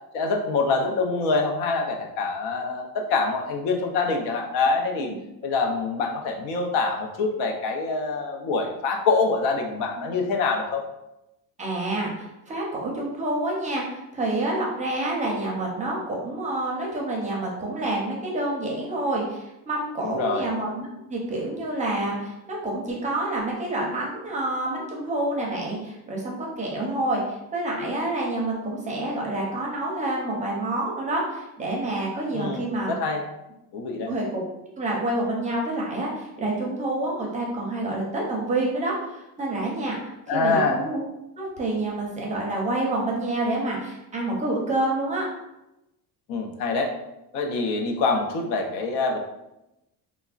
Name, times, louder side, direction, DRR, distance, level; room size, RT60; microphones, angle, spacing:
voice 1, 0.1-5.1 5.4-10.8 20.0-20.5 32.3-33.2 33.7-34.1 40.3-40.8 46.3-46.9 47.3-49.2, left 3 dB, 85° left, 3 dB, 0.6 m, -25 dB
voice 2, 11.6-32.9 34.1-34.4 34.8-41.0 41.4-45.3, right 2 dB, 20° right, -3 dB, 0.5 m, -28 dB
3.4 x 2.1 x 2.4 m, 0.91 s
cardioid pair, 150°, 39 cm